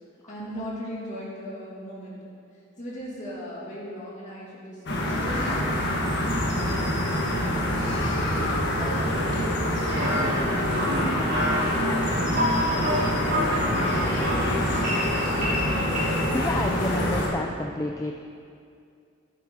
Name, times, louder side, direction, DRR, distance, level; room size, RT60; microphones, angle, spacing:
voice 1, 0.3-2.2 2.5-7.9 8.4-12.3 13.1-14.9, equal, 40° left, -6 dB, 2.3 m, -39 dB
sound 1, 4.9-17.3, left 1 dB, 60° left, 1.5 m, -26 dB
sound 2, 9.9-16.0, equal, 50° right, 2.5 m, -28 dB
voice 2, 12.5-12.9 13.8-14.2 16.3-18.1, left 2 dB, 15° left, 3 dB, 0.3 m, -31 dB
10.5 x 9.0 x 3.7 m, 2.4 s
head